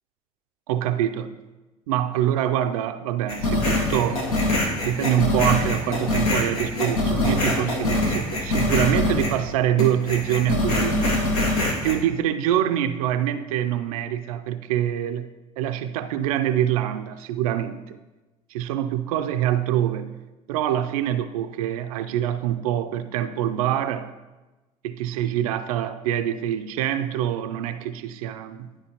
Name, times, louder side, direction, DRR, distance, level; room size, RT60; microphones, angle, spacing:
voice 1, 0.7-1.3 1.9-4.3 4.8-11.2 11.8-15.3 15.6-18.0 18.5-20.1 20.5-24.1 24.8-28.7, right 11 dB, 75° right, 9 dB, 0.4 m, -25 dB
sound 1, 3.3-9.4 9.8-11.9, left 1 dB, 80° left, 1.4 m, -24 dB
12.0 x 4.9 x 2.9 m, 1.1 s
hypercardioid pair, 60°, 19 cm